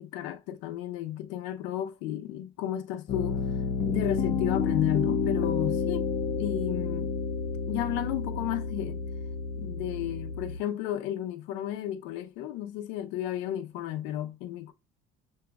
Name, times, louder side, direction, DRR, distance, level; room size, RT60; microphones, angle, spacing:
voice 1, 0.0-3.4 3.9-7.1 7.7-9.0 9.6-14.7, left 12 dB, 75° left, 0.8 m, -33 dB
Piano, 3.1-10.6, left 5 dB, 40° left, 0.6 m, -30 dB
6.9 x 2.8 x 2.4 m
cardioid pair, 140°, 19 cm